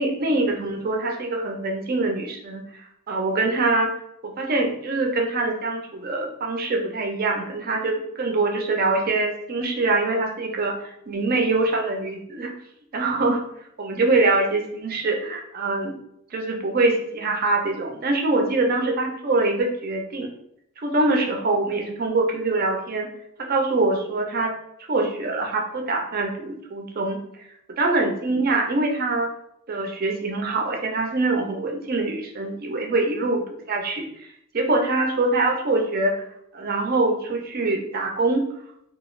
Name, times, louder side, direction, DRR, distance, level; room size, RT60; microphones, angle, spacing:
voice 1, 0.0-2.6 3.1-3.9 4.2-12.5 12.9-13.4 13.8-16.0 16.3-20.3 20.8-23.1 23.4-24.5 24.9-27.2 27.8-29.3 29.7-34.1 34.5-36.2 36.5-38.5, right 2 dB, 45° right, 2 dB, 0.5 m, -24 dB
2.3 x 2.3 x 3.1 m, 0.75 s
head